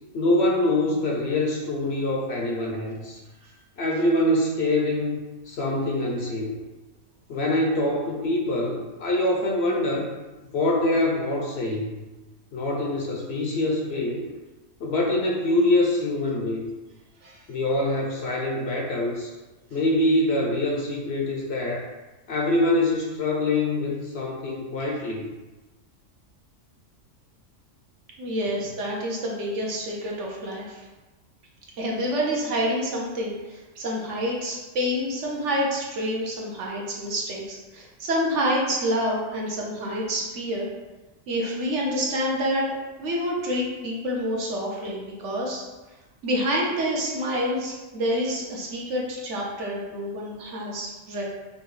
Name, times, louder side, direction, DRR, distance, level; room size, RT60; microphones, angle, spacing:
voice 1, 0.1-3.2 3.8-5.2 5.5-6.6 7.3-10.2 10.5-11.9 12.5-14.2 14.8-16.6 17.5-19.3 19.7-21.9 22.3-25.3, left 1 dB, 60° left, -1 dB, 0.8 m, -24 dB
voice 2, 28.2-30.9 31.8-40.7 41.3-42.7 43.0-45.6 46.2-51.2, equal, 65° right, -3 dB, 1.1 m, -28 dB
5.2 x 2.3 x 3.1 m, 1.2 s
omnidirectional pair, 1.4 m